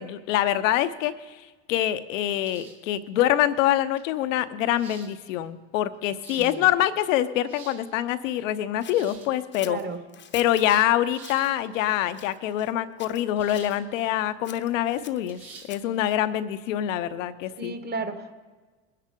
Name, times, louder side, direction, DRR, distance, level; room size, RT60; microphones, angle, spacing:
voice 1, 0.0-1.4 1.7-9.8 10.3-15.4 15.7-17.7, left 12 dB, 75° left, 12 dB, 0.9 m, -25 dB
sound 1, 2.4-2.9 4.0-4.1 4.7-5.1 5.9-6.5 7.3-7.8 8.8-9.3 11.0-11.5 13.4-13.8 14.2-14.3 15.3-15.7, right 5 dB, 80° right, 2.9 m, -47 dB
voice 2, 6.4-6.7 9.6-10.0 17.6-18.4, right 3 dB, 25° right, 7 dB, 1.4 m, -34 dB
Scissors, 8.8-10.7 11.2-11.5 12.1-12.7 13.0-13.8 14.4-16.0, left 8 dB, 30° left, 0.9 m, -46 dB
21.0 x 10.0 x 3.8 m, 1.3 s
hypercardioid pair, 95°, 39 cm